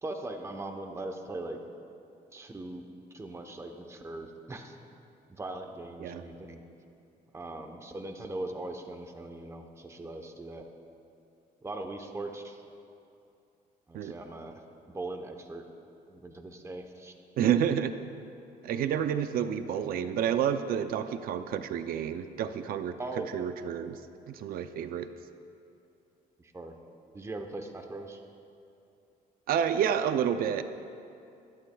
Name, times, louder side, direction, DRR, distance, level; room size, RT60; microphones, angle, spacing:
voice 1, 0.0-1.6 2.3-2.8 3.1-4.7 5.3-6.6 7.3-10.6 11.6-12.6 13.9-14.6 14.9-15.7 16.1-17.1 23.0-23.5 26.4-26.7 27.1-28.2, right 2 dB, 15° right, 5 dB, 0.9 m, -40 dB
voice 2, 17.4-17.9 18.6-22.9 23.3-24.0 24.3-25.1 29.5-30.6, right 9 dB, 70° right, 10 dB, 0.5 m, -29 dB
21.0 x 11.5 x 2.3 m, 2.6 s
cardioid pair, 115°, 16 cm